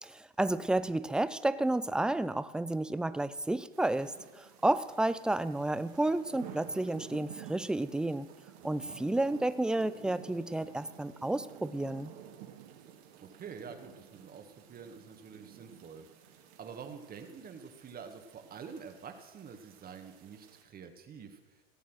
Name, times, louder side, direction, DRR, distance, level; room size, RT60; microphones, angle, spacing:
voice 1, 0.0-8.3 8.6-12.1, right 2 dB, 5° right, 14 dB, 0.3 m, -31 dB
sound 1, 3.7-20.6, right 9 dB, 50° right, 2.0 m, -52 dB
voice 2, 8.6-9.0 13.2-16.0 16.6-21.6, right 6 dB, 30° right, 7 dB, 1.6 m, -47 dB
17.0 x 8.3 x 6.2 m, 1.2 s
hypercardioid pair, 100°, 32 cm